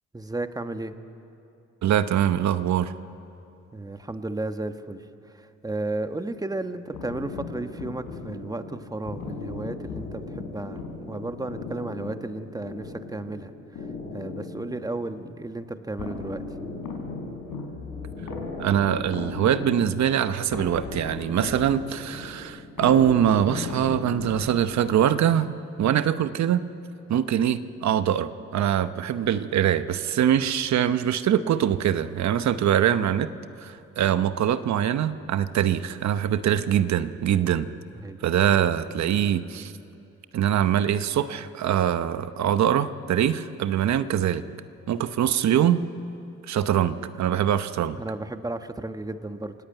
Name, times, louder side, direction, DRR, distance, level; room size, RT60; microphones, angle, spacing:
voice 1, 0.1-0.9 3.7-5.0 5.3-13.5 14.1-16.4 37.9-38.2 48.0-49.5, right 2 dB, 10° right, 8 dB, 1.2 m, -33 dB
voice 2, 1.8-2.9 18.6-25.5 25.8-26.6 27.1-33.3 33.6-37.7 38.2-39.7 40.3-44.4 44.9-45.8 46.5-48.0, right 10 dB, 65° right, 12 dB, 0.9 m, -23 dB
sound 1, 6.9-25.0, left 3 dB, 80° left, 4.7 m, -37 dB
27.5 x 18.0 x 9.1 m, 2.8 s
cardioid pair, 90°, 30 cm